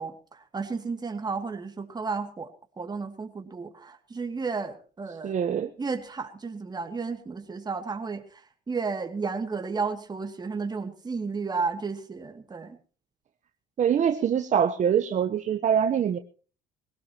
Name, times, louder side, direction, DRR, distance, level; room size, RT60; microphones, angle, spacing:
voice 1, 0.0-2.5 2.8-5.3 5.8-12.8, right 4 dB, 25° right, 6 dB, 2.5 m, -33 dB
voice 2, 5.2-5.7 13.8-16.2, right 8 dB, 45° right, 7 dB, 1.1 m, -24 dB
21.0 x 17.5 x 3.0 m, 0.38 s
cardioid pair, 110°, 17 cm